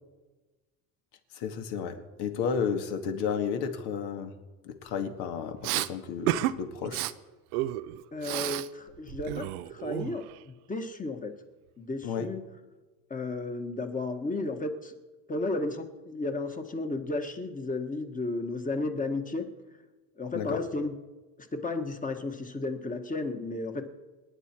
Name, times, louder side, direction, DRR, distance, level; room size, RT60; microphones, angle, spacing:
voice 1, 1.3-4.3 4.6-7.1 12.0-12.3 20.3-20.6, left 6 dB, 65° left, 6 dB, 2.2 m, -32 dB
Respiratory sounds, 5.6-5.9 6.3-6.5 6.8-7.1 7.5-8.7 8.9-10.4, right 16 dB, 90° right, 0.8 m, -31 dB
voice 2, 8.1-11.3 11.8-12.4 13.1-15.0 15.3-19.5 20.2-21.0 21.5-23.9, left 2 dB, 20° left, 5 dB, 1.6 m, -33 dB
27.0 x 10.0 x 4.6 m, 1.2 s
supercardioid pair, 120°, 43 cm